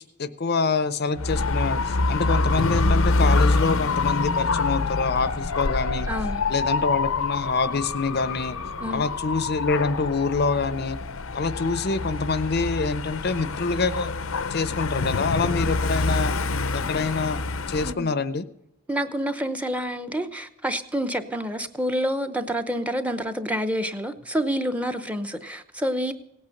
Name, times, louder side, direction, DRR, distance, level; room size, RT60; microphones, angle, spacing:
voice 1, 0.2-6.1 6.5-8.6 8.9-11.0 11.3-14.1 14.5-16.4 16.7-17.4 17.7-18.5, left 4 dB, 50° left, 0.6 m, -26 dB
Dog / Motorcycle, 1.2-17.9, left 3 dB, 80° left, 0.7 m, -26 dB
voice 2, 6.1-6.4 8.8-9.1 17.8-18.1 18.9-26.1, equal, 5° right, 0.7 m, -28 dB
17.5 x 8.8 x 6.5 m
head